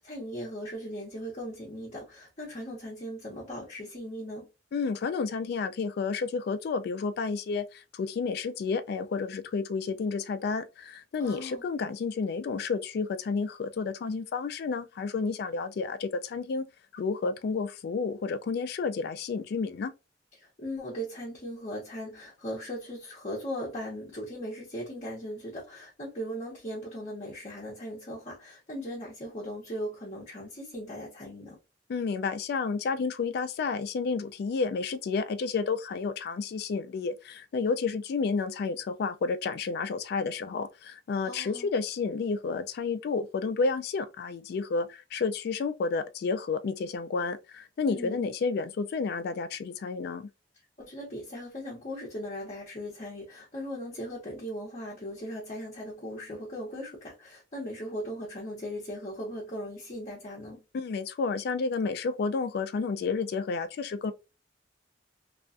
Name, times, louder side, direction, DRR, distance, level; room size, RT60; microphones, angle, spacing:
voice 1, 0.0-4.5 11.2-11.6 20.4-31.6 41.2-41.7 47.9-48.3 50.8-60.6, equal, 40° left, 0.8 m, -38 dB
voice 2, 4.7-16.6 16.9-19.9 31.9-50.3 60.7-64.1, left 4 dB, 60° left, 0.3 m, -31 dB
2.4 x 2.2 x 2.4 m
head